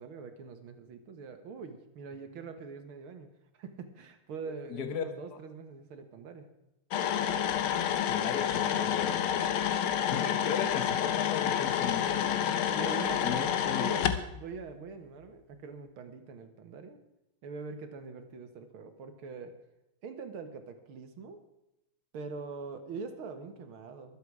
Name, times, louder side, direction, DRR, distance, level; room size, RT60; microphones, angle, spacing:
voice 1, 0.0-3.3 3.6-6.5 12.7-13.4 13.7-14.0 14.3-17.0 17.4-19.5 20.0-21.4 22.1-24.2, right 4 dB, 80° right, 8 dB, 2.3 m, -43 dB
voice 2, 4.5-5.0 8.1-9.6 10.1-12.8 13.2-14.1, left 7 dB, 50° left, 8 dB, 1.7 m, -37 dB
sound 1, 6.9-14.2, left 9 dB, 80° left, 1.8 m, -29 dB
23.0 x 7.9 x 4.8 m, 0.90 s
omnidirectional pair, 2.3 m